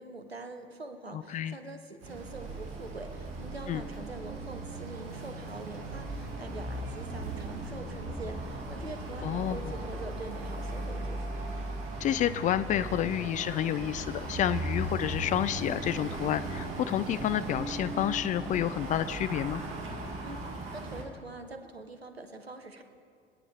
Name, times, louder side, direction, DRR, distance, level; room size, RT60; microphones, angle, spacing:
voice 1, 0.0-11.4 20.2-20.4 20.7-22.8, right 2 dB, 90° right, 7 dB, 1.0 m, -44 dB
voice 2, 1.1-1.6 3.7-3.8 9.2-9.6 12.0-19.6, left 11 dB, 25° left, 14 dB, 0.4 m, -29 dB
sound 1, 2.0-21.0, right 2 dB, 45° right, 2.0 m, -37 dB
26.5 x 9.6 x 3.3 m, 2.3 s
figure-of-eight pair, 70°, 30 cm